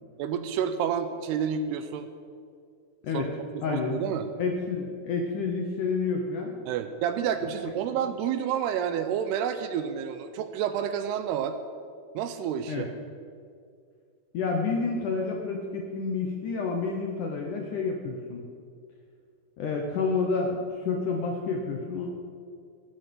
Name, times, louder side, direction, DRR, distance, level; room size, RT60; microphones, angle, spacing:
voice 1, 0.2-2.1 3.1-3.2 3.5-4.3 6.7-11.6 12.1-12.9, right 8 dB, 80° right, 9 dB, 2.6 m, -29 dB
voice 2, 3.6-4.1 4.4-6.5 7.6-7.7 12.7-12.9 14.3-18.5 19.6-22.1, left 4 dB, 70° left, 2 dB, 1.9 m, -29 dB
17.5 x 12.0 x 5.3 m, 2.2 s
omnidirectional pair, 5.0 m